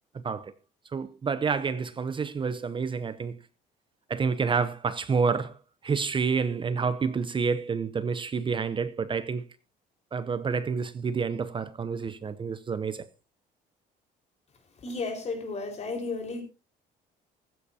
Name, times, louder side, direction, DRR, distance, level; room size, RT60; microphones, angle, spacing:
voice 1, 0.1-0.5 0.9-3.4 4.1-5.6 5.8-9.4 10.1-13.1, right 5 dB, 30° right, 0.8 m, -29 dB
voice 2, 14.8-16.4, left 3 dB, 40° left, 4.8 m, -33 dB
15.0 x 15.0 x 2.8 m
cardioid pair, 110°, 17 cm